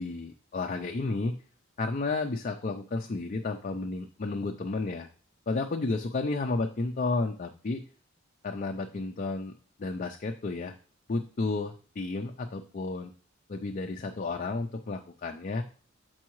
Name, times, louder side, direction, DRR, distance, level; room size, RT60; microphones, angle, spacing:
voice 1, 0.0-1.3 1.8-5.1 5.5-7.8 8.4-9.5 9.8-10.7 11.1-13.1 13.5-15.6, left 3 dB, 40° left, 4 dB, 0.4 m, -32 dB
7.3 x 4.6 x 3.0 m, 0.41 s
head